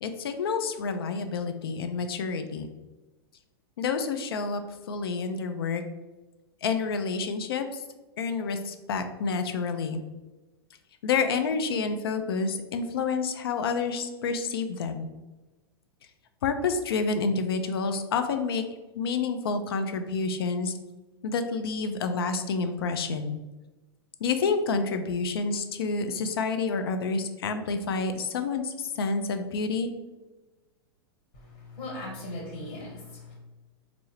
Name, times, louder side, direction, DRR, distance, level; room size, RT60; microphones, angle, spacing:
voice 1, 0.0-2.7 3.8-4.6 4.9-5.8 6.6-7.8 8.2-10.0 11.0-15.1 16.4-18.6 19.0-20.7 21.2-23.4 24.2-29.9, left 4 dB, 65° left, 8 dB, 0.4 m, -29 dB
voice 2, 31.3-33.3, left 1 dB, 45° left, -1 dB, 1.3 m, -39 dB
4.4 x 2.0 x 3.1 m, 1.2 s
figure-of-eight pair, 100°, 13 cm